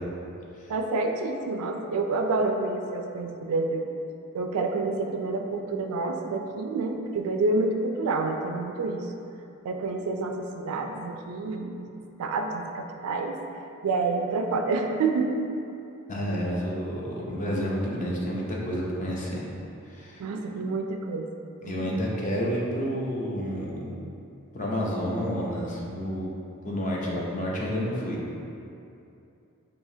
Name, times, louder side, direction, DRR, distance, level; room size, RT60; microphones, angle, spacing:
voice 1, 0.7-3.9 4.3-9.0 9.6-13.4 13.8-15.3 20.2-21.3 21.6-22.0, right 3 dB, 80° right, 4 dB, 0.3 m, -28 dB
voice 2, 16.1-19.4 19.9-20.2 21.6-23.9 24.5-26.3 26.6-28.2, equal, 35° left, -4 dB, 0.6 m, -30 dB
4.8 x 2.8 x 2.7 m, 2.6 s
head